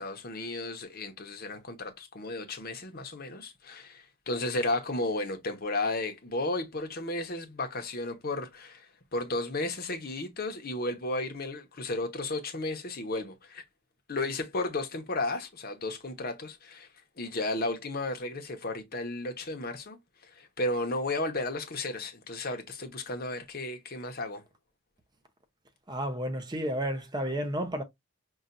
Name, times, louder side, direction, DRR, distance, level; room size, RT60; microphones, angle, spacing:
voice 1, 0.0-13.6 14.1-16.9 17.2-20.0 20.2-24.4, left 2 dB, 45° left, 0.9 m, -33 dB
voice 2, 25.9-27.8, equal, 20° right, 0.7 m, -31 dB
5.5 x 2.5 x 2.5 m
head